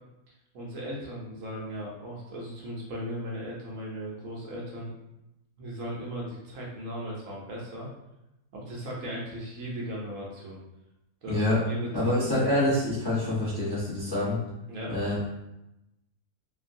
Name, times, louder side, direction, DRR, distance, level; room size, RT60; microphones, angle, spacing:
voice 1, 0.5-4.9 5.6-7.9 8.5-10.6 11.2-12.4 14.7-14.9, equal, 65° right, -3 dB, 0.9 m, -37 dB
voice 2, 11.3-11.6 11.9-14.4 14.9-15.2, left 1 dB, 25° left, -8 dB, 0.5 m, -26 dB
2.9 x 2.5 x 2.5 m, 0.90 s
omnidirectional pair, 1.6 m